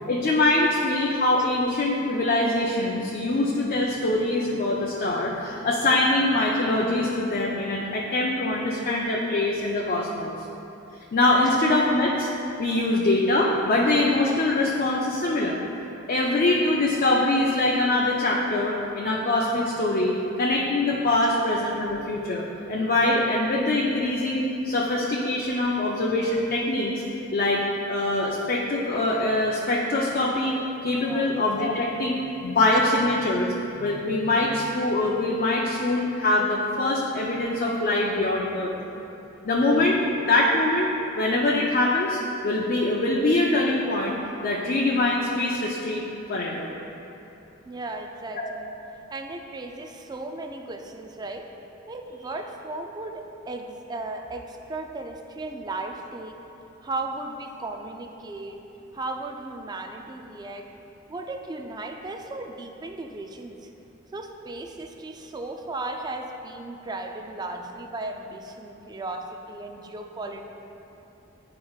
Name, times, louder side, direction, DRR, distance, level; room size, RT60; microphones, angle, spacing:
voice 1, 0.1-10.4 11.1-12.3 12.6-15.6 16.1-20.1 20.4-27.0 27.3-27.6 27.9-30.5 30.8-33.5 33.8-38.7 39.4-40.0 40.3-40.9 41.1-44.2 44.4-46.0 46.3-46.7 48.4-48.5, left 2 dB, 45° left, -3 dB, 0.5 m, -23 dB
voice 2, 31.0-31.3 47.6-48.7 49.1-51.5 51.9-56.4 56.8-58.6 58.9-60.7 61.1-63.7 64.1-70.4, right 2 dB, 20° right, 4 dB, 0.4 m, -36 dB
10.5 x 4.7 x 2.4 m, 2.9 s
head